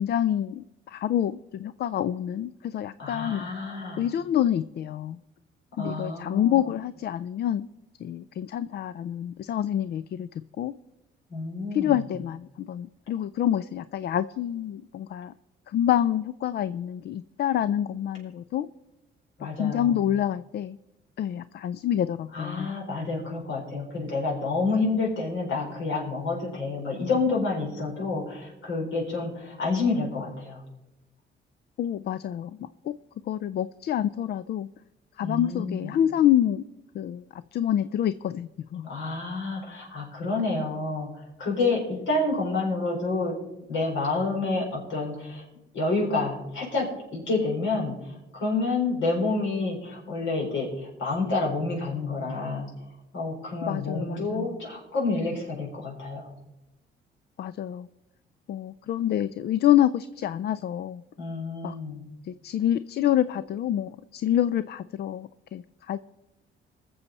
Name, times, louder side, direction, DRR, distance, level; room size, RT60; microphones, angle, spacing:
voice 1, 0.0-3.5 4.0-5.2 5.8-7.7 8.0-10.3 10.6-10.7 11.7-15.3 15.7-18.7 19.6-20.8 21.2-22.7 31.8-32.9 33.3-34.7 35.2-36.6 36.9-38.9 53.7-54.4 57.4-57.9 58.5-61.0 61.6-61.7 62.2-66.0, left 11 dB, 55° left, 16 dB, 0.4 m, -27 dB
voice 2, 3.0-4.1 5.7-6.6 11.3-12.0 19.4-20.0 22.3-30.6 35.2-35.9 38.8-43.4 43.7-45.4 45.7-52.7 53.1-56.3 61.2-62.0, left 3 dB, 70° left, -2 dB, 4.6 m, -29 dB
21.0 x 7.1 x 4.1 m, 0.98 s
cardioid pair, 90°, 20 cm